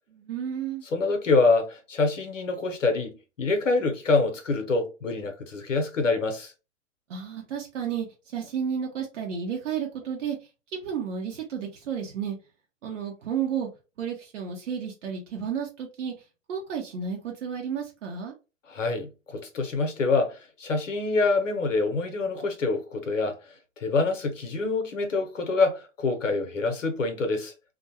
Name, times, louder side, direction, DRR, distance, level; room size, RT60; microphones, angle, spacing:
voice 1, 0.1-0.8 7.1-10.4 10.7-12.4 12.8-13.7 14.0-16.1 16.5-18.3, right 7 dB, 75° right, 0.8 m, -32 dB
voice 2, 0.9-6.5 18.7-23.4 23.8-27.5, left 3 dB, 85° left, 0.8 m, -26 dB
2.4 x 2.2 x 2.8 m
hypercardioid pair, 105°, 37 cm